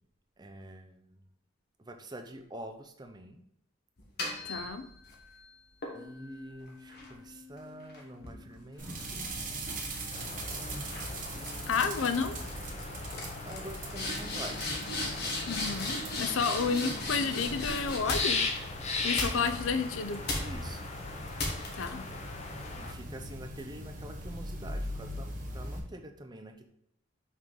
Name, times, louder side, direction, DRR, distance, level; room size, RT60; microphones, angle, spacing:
voice 1, 0.4-1.2 1.8-3.4 5.9-9.4 11.3-12.3 13.4-14.6 20.4-20.9 22.8-26.7, right 1 dB, 20° right, 5 dB, 0.5 m, -46 dB
sound 1, 4.0-5.2 5.8-9.4 9.8-10.2 10.9-11.1 11.4-11.8 12.1-12.5 12.8-12.9 13.1-18.6 19.2-19.8 20.3-20.7 21.4-21.9, left 2 dB, 55° left, 1.4 m, -37 dB
voice 2, 4.4-4.9 11.7-12.4 15.5-18.4 19.0-20.3 21.8-22.1, left 5 dB, 80° left, 10 dB, 0.5 m, -31 dB
sound 2, 8.8-25.8, right 1 dB, 40° right, 1.1 m, -41 dB
sound 3, 10.1-22.9, left 4 dB, 35° left, 0.7 m, -39 dB
5.5 x 3.8 x 4.8 m, 0.74 s
head